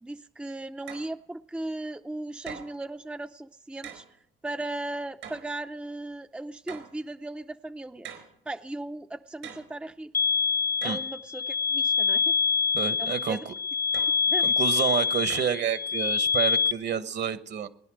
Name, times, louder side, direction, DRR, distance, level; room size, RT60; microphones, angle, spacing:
voice 1, 0.0-4.0 4.4-8.1 8.5-10.1 10.8-12.4 13.0-13.5 14.3-14.5, right 2 dB, 5° right, 8 dB, 0.5 m, -37 dB
sound 1, 0.9-1.1 2.5-2.8 3.8-4.1 5.2-5.5 6.7-7.0 8.0-8.4 9.4-9.8 10.8-11.1 13.9-14.2 15.3-15.6, right 8 dB, 80° right, 4.5 m, -42 dB
sound 2, 10.1-16.7, left 6 dB, 45° left, 0.8 m, -25 dB
voice 2, 12.7-13.5 14.4-17.7, right 8 dB, 60° right, 12 dB, 1.3 m, -29 dB
20.5 x 10.5 x 6.4 m, 0.69 s
cardioid pair, 90°, 20 cm